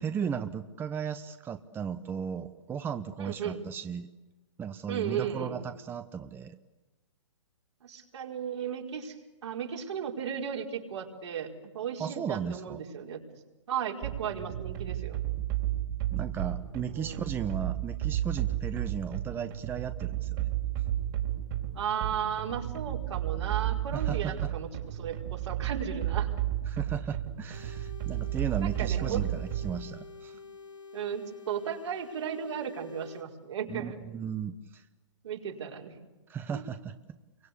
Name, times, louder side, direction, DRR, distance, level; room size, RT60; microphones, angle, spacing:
voice 1, 0.0-4.1 4.6-6.6 12.0-12.8 16.1-20.5 23.9-24.5 26.7-30.4 33.7-34.8 36.3-37.2, right 7 dB, 15° right, 10 dB, 0.9 m, -36 dB
voice 2, 3.2-3.6 4.9-5.6 7.8-9.1 9.4-13.2 13.7-15.2 16.9-17.2 21.7-24.7 25.0-26.3 28.6-29.2 30.9-34.0 35.2-35.9 36.5-36.6, right 8 dB, 65° right, 0 dB, 4.9 m, -35 dB
sound 1, 14.0-29.9, right 13 dB, 40° right, 4.0 m, -33 dB
sound 2, 27.5-33.3, left 5 dB, 85° left, 3.2 m, -48 dB
29.5 x 23.5 x 8.5 m, 1.1 s
hypercardioid pair, 130°, 16 cm